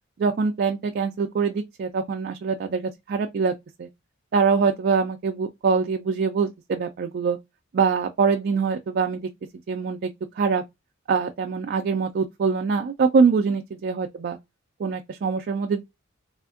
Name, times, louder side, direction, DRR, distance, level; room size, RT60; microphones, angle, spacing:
voice 1, 0.2-3.5 3.8-3.9 4.3-7.4 7.7-9.2 9.7-10.1 10.4-10.6 11.1-14.4 14.8-15.8, right 5 dB, 50° right, 0.3 m, -23 dB
3.5 x 2.4 x 2.3 m
head